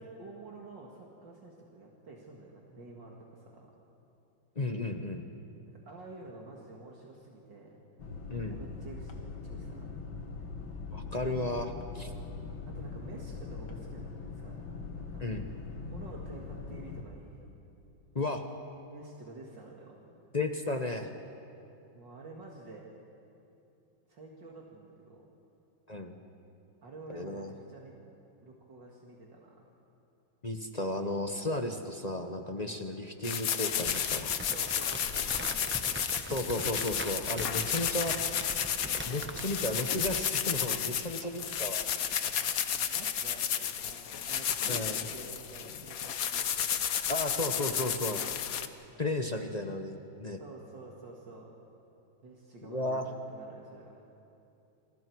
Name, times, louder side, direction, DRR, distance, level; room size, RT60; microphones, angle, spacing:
voice 1, 0.0-3.7 5.7-7.8 8.5-10.0 12.7-15.2 15.8-17.5 18.9-20.0 21.9-22.9 24.1-25.3 26.8-27.9 28.4-29.7 34.3-36.2 39.7-40.0 42.8-46.9 50.4-51.5 52.2-53.0 53.3-54.0, right 2 dB, 65° right, -2 dB, 2.7 m, -49 dB
voice 2, 4.6-5.2 8.3-8.6 10.9-12.1 15.2-15.4 18.1-18.4 20.3-21.1 25.9-26.2 27.1-27.5 30.4-34.3 36.3-38.2 39.1-41.8 44.7-45.0 47.1-48.2 49.0-50.4 52.6-53.1, left 2 dB, 30° left, 5 dB, 0.8 m, -34 dB
sound 1, 8.0-17.0, left 4 dB, 75° left, 2.5 m, -41 dB
sound 2, 33.2-48.6, left 8 dB, 55° left, 1.2 m, -32 dB
Crumpling crinkling, 33.7-40.3, right 1 dB, 15° right, 0.4 m, -42 dB
28.5 x 26.5 x 4.7 m, 2.7 s
omnidirectional pair, 2.1 m